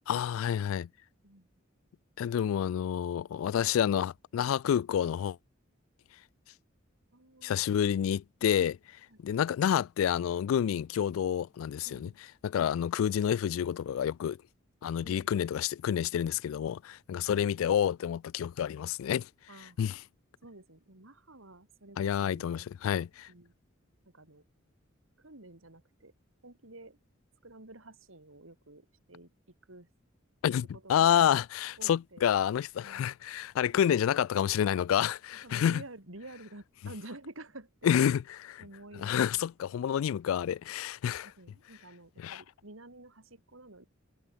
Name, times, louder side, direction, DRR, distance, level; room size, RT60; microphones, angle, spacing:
voice 1, 0.1-0.9 2.2-5.4 7.4-8.8 9.2-12.1 12.4-14.4 14.8-19.3 19.8-20.0 22.0-23.3 30.4-35.8 37.8-38.6 39.0-41.3 42.2-42.4, left 9 dB, 80° left, 0.3 m, -29 dB
voice 2, 7.1-7.6 9.1-9.2 11.8-12.2 12.6-12.8 15.0-15.3 17.2-17.3 19.5-19.8 20.4-22.8 23.3-23.6 24.1-24.4 25.2-26.1 26.4-27.0 27.4-29.9 30.7-31.1 31.8-32.3 32.8-33.1 35.3-37.9 38.6-39.5 41.2-43.9, right 2 dB, 75° right, 3.8 m, -50 dB
head